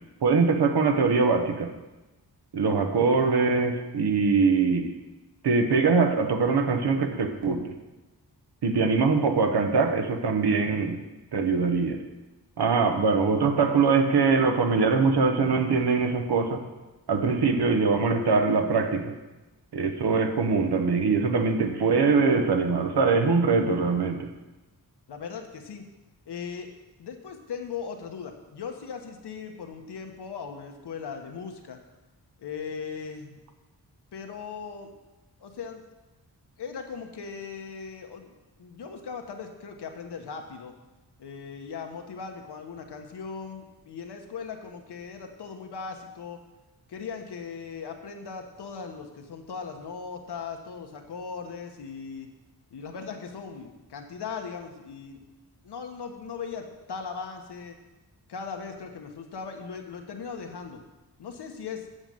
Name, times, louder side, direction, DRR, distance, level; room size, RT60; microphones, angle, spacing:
voice 1, 0.2-1.7 2.5-4.9 5.4-7.7 8.6-11.0 11.3-12.0 12.6-16.6 17.1-19.1 19.7-24.3, right 4 dB, 75° right, 6 dB, 1.1 m, -23 dB
voice 2, 25.1-25.9 26.3-26.7 27.0-31.8 32.4-33.4 34.1-34.9 35.4-35.8 36.6-40.7 41.2-46.4 46.9-52.3 52.7-55.2 55.6-57.8 58.3-60.8 61.2-61.9, left 5 dB, 90° left, 4 dB, 1.2 m, -38 dB
7.9 x 5.4 x 7.7 m, 1.1 s
wide cardioid pair, 90°, 39 cm